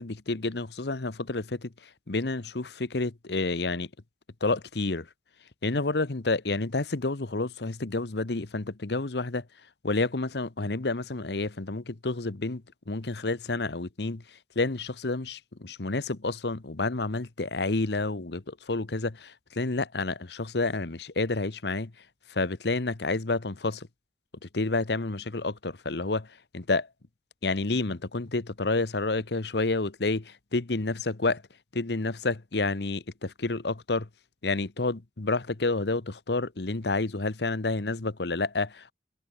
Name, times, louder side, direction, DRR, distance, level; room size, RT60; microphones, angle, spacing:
voice 1, 0.0-3.9 4.4-5.1 5.6-9.4 9.8-21.9 22.3-23.9 24.5-26.3 26.5-26.9 27.4-31.4 31.7-34.1 34.4-38.9, left 3 dB, 75° left, 1.1 m, -29 dB
head